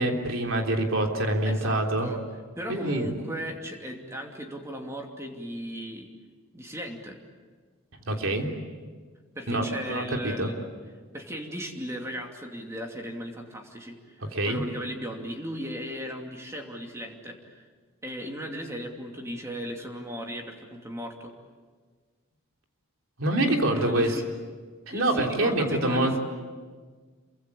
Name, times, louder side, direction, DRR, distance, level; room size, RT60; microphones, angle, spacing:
voice 1, 0.0-2.1 2.7-3.1 8.1-8.6 9.5-10.5 14.3-14.6 23.2-24.1 24.9-26.2, right 1 dB, 70° right, 2 dB, 3.5 m, -26 dB
voice 2, 1.5-2.2 2.6-6.1 6.5-7.2 9.3-10.7 11.1-17.7 18.0-21.3 23.7-24.2 24.9-26.2, equal, 15° right, 2 dB, 2.7 m, -36 dB
28.0 x 24.0 x 8.5 m, 1.5 s
head